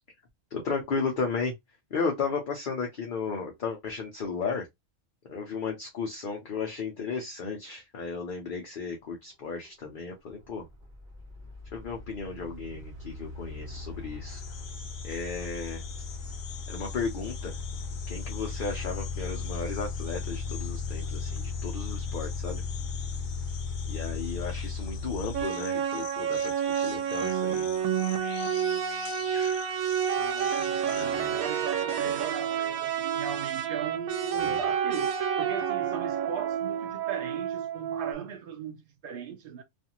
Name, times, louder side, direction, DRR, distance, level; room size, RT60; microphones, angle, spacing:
voice 1, 0.5-1.5 1.9-4.7 5.3-10.7 11.7-14.4 15.0-15.8 16.7-17.6 18.1-22.6 23.9-27.7 30.9-31.4 32.0-32.2 34.3-34.6, left 5 dB, 50° left, 0.6 m, -34 dB
sound 1, 9.7-9.8 10.3-25.4, left 4 dB, 35° right, 1.1 m, -36 dB
sound 2, 14.3-31.0, left 8 dB, 70° left, 1.0 m, -46 dB
sound 3, 25.3-38.1, right 8 dB, 90° right, 1.0 m, -29 dB
voice 2, 30.1-39.6, right 8 dB, 70° right, 0.5 m, -38 dB
2.5 x 2.5 x 2.8 m
omnidirectional pair, 1.4 m